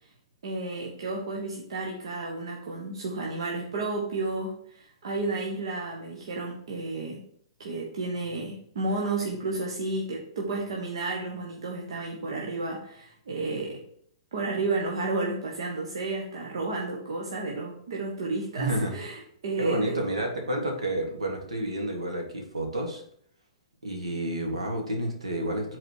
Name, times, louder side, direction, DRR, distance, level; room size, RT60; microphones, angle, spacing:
voice 1, 0.4-7.2 7.6-13.8 14.3-20.0, right 3 dB, 60° right, -2 dB, 1.2 m, -32 dB
voice 2, 18.6-19.0 19.6-23.0 23.8-25.8, right 1 dB, 75° right, 2 dB, 1.8 m, -30 dB
7.8 x 4.2 x 4.6 m, 0.64 s
figure-of-eight pair, 110°, 3 cm